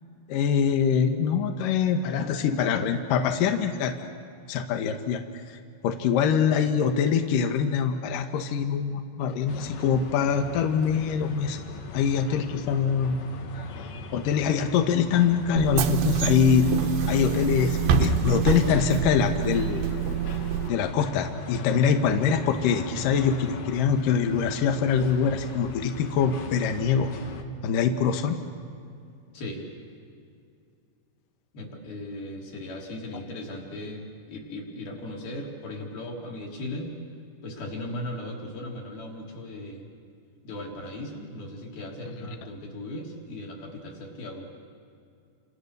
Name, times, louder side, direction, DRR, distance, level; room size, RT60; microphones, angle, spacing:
voice 1, 0.3-4.1 4.5-5.2 5.5-5.6 5.8-11.6 11.9-13.2 13.8-16.7 17.1-19.8 20.7-27.1 27.6-28.4, left 7 dB, 70° left, 5 dB, 2.1 m, -24 dB
sound 1, 9.5-27.4, left 4 dB, 90° left, 1.5 m, -40 dB
Bus / Engine, 15.6-20.7, right 8 dB, 70° right, 2.3 m, -26 dB
voice 2, 29.3-29.7 31.5-36.9 37.4-39.9 40.4-44.5, left 1 dB, 50° left, -1 dB, 5.1 m, -37 dB
30.0 x 27.5 x 6.7 m, 2.4 s
omnidirectional pair, 5.6 m